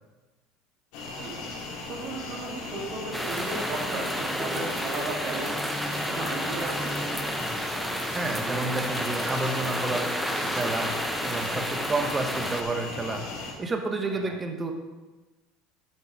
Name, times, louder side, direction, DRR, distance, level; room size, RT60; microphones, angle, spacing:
sound 1, 0.9-13.5, left 3 dB, 70° left, 3.1 m, -37 dB
voice 1, 1.9-5.6 6.1-7.0 14.1-14.4, right 3 dB, 55° right, 0 dB, 2.4 m, -36 dB
sound 2, 3.1-12.6, equal, ahead, 0.9 m, -31 dB
voice 2, 8.1-10.9 11.2-13.2 13.6-14.7, right 3 dB, 20° right, 5 dB, 1.2 m, -30 dB
9.4 x 6.5 x 4.8 m, 1.2 s
supercardioid pair, 115°, 0 cm